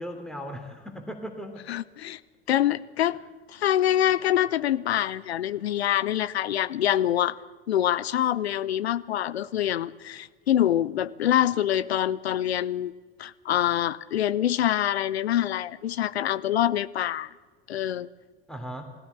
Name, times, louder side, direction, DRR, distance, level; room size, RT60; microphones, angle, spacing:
voice 1, 0.0-1.6 18.5-18.8, equal, ahead, 5 dB, 3.1 m, -37 dB
voice 2, 1.7-2.2 2.5-3.2 3.5-7.4 7.7-12.9 13.2-17.3 17.7-18.1, left 11 dB, 80° left, 18 dB, 0.7 m, -25 dB
20.5 x 16.5 x 8.1 m, 1.4 s
figure-of-eight pair, 65°, 31 cm